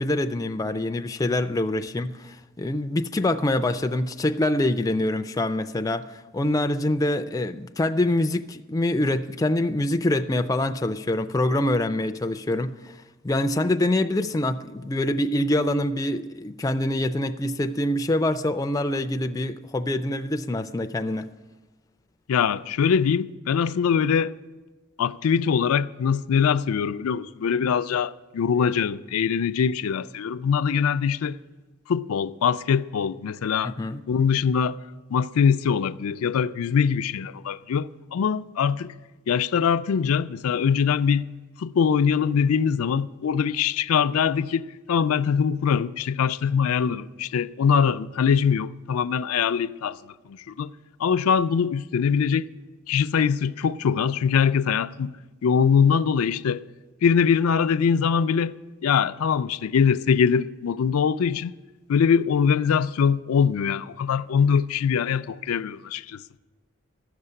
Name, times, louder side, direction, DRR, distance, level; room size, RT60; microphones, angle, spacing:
voice 1, 0.0-13.0 13.2-21.3 33.6-34.0, left 1 dB, 15° left, 0.3 m, -25 dB
voice 2, 22.3-24.3 25.0-31.4 31.9-33.7 34.1-34.8 35.1-38.9 39.3-41.3 41.6-50.0 50.3-50.7 51.0-52.5 52.9-55.2 55.4-56.6 57.0-58.6 58.8-61.5 61.9-66.2, left 6 dB, 90° left, 0.4 m, -23 dB
14.0 x 6.7 x 9.8 m
head